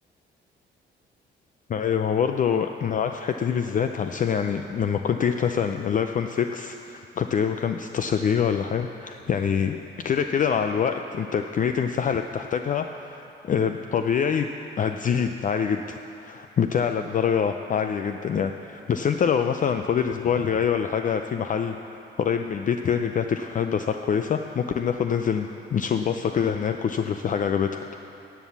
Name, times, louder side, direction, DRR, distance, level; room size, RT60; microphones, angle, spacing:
voice 1, 1.7-14.5 14.8-27.9, left 7 dB, 40° left, 7 dB, 0.5 m, -25 dB
11.5 x 8.2 x 7.1 m, 2.8 s
cardioid pair, 90°, 20 cm